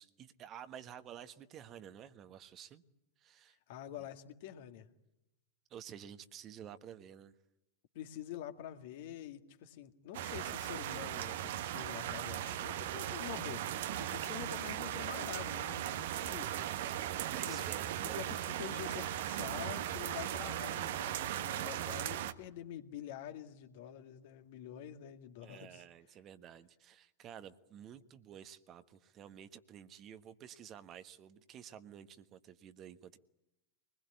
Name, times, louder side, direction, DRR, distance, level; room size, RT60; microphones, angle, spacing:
voice 1, 0.0-2.8 3.2-3.6 5.7-7.3 17.2-18.2 25.4-33.2, right 9 dB, 30° right, 11 dB, 1.4 m, -51 dB
voice 2, 3.7-4.9 7.9-16.5 17.5-17.6 18.2-25.8, left 11 dB, 50° left, 8 dB, 2.0 m, -47 dB
sound 1, 10.1-22.3, right 11 dB, 55° right, 1.3 m, -38 dB
24.0 x 20.5 x 9.6 m, 0.89 s
figure-of-eight pair, 90°, 0 cm